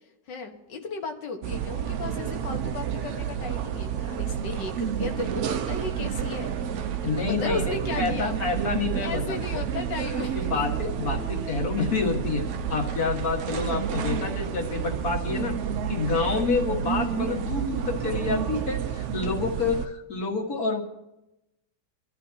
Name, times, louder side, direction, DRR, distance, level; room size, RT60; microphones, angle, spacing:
voice 1, 0.3-8.4 9.0-10.5 11.3-11.4, left 4 dB, 80° left, 4 dB, 2.0 m, -35 dB
sound 1, 1.4-19.9, right 8 dB, 65° right, 0.7 m, -30 dB
voice 2, 7.0-9.7 10.3-15.6 15.9-20.8, left 4 dB, 55° left, 1 dB, 2.1 m, -28 dB
25.0 x 12.0 x 2.8 m, 0.93 s
omnidirectional pair, 1.9 m